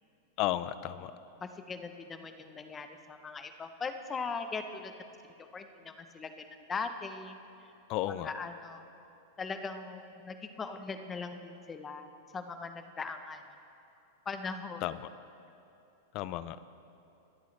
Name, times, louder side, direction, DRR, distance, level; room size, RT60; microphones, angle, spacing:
voice 1, 0.4-1.1 7.9-8.3 14.8-14.9 16.1-16.7, left 14 dB, 45° left, 15 dB, 0.4 m, -33 dB
voice 2, 0.9-4.9 5.5-7.4 8.1-8.8 9.4-13.4 14.2-14.9, left 4 dB, 20° left, 8 dB, 0.8 m, -40 dB
23.0 x 8.3 x 3.3 m, 2.8 s
hypercardioid pair, 125°, 0 cm